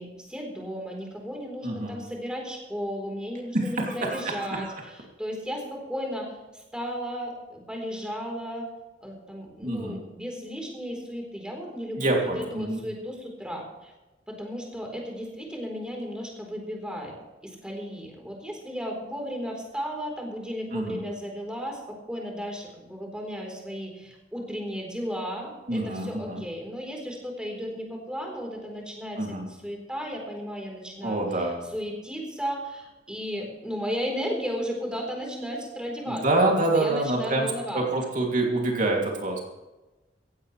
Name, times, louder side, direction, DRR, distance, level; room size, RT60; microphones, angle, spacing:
voice 1, 0.0-8.7 9.0-13.9 14.3-17.1 17.4-36.2 36.5-37.8, equal, 5° right, 0 dB, 4.0 m, -35 dB
voice 2, 1.6-2.0 3.5-4.2 4.6-4.7 9.6-10.0 12.0-12.8 20.7-21.0 25.7-26.4 29.1-29.5 31.0-31.7 36.1-39.4, right 2 dB, 45° right, 0 dB, 2.8 m, -26 dB
16.5 x 16.0 x 3.3 m, 1.1 s
head